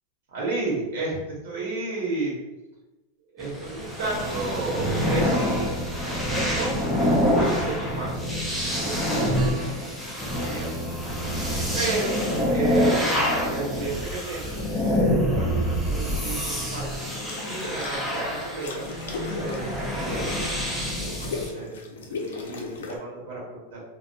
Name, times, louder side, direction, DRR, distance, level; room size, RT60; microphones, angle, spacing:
voice 1, 0.3-2.3 3.3-5.8 6.3-6.7 7.3-8.3 8.6-10.7 11.7-12.2 12.5-13.2 13.5-14.6 15.3-16.8 17.2-18.9 19.4-20.2 21.2-21.8 22.1-23.8, right 2 dB, 65° right, -5 dB, 1.0 m, -32 dB
sound 1, 3.4-21.5, equal, 5° left, 0.4 m, -26 dB
sound 2, 14.4-15.1 17.0-18.0 18.3-23.0, left 3 dB, 85° left, 0.5 m, -37 dB
2.4 x 2.2 x 2.6 m, 1.0 s
supercardioid pair, 165°, 0 cm